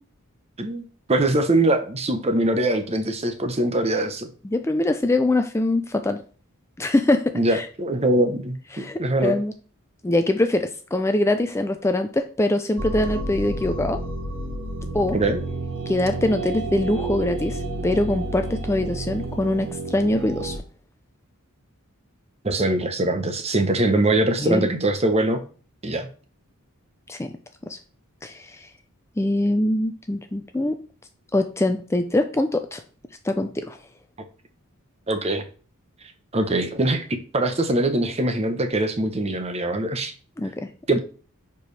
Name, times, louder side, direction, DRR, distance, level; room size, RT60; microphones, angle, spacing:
voice 1, 0.6-4.3 7.3-9.3 15.1-15.4 22.4-25.4 25.8-26.1 35.1-35.4 36.3-40.1 40.9-41.0, right 1 dB, 30° right, 8 dB, 0.8 m, -22 dB
voice 2, 4.4-6.2 6.8-7.7 8.7-9.5 10.0-14.0 14.9-15.2 15.9-20.6 24.4-24.7 27.1-27.3 27.7-27.8 28.2-28.7 29.2-30.8 31.3-32.8 33.2-33.8 40.4-40.7, left 1 dB, 10° left, 7 dB, 0.4 m, -23 dB
sound 1, 12.8-20.6, right 2 dB, 60° right, 1.2 m, -30 dB
10.0 x 4.6 x 3.3 m, 0.40 s
head